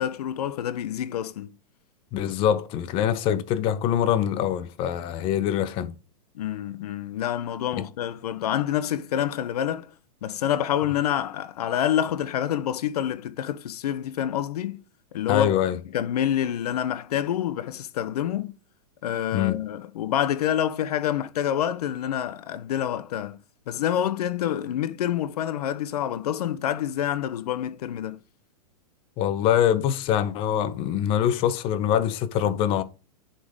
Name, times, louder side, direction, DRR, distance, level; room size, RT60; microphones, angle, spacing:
voice 1, 0.0-1.6 6.3-9.9 10.2-14.8 15.1-15.5 15.9-18.5 19.0-23.4 23.7-28.2, left 10 dB, 75° left, 0.9 m, -27 dB
voice 2, 2.1-5.9 7.8-7.9 15.3-15.8 19.3-19.6 29.2-32.8, left 10 dB, 25° left, 0.7 m, -24 dB
10.5 x 3.9 x 4.9 m
supercardioid pair, 160°, 20 cm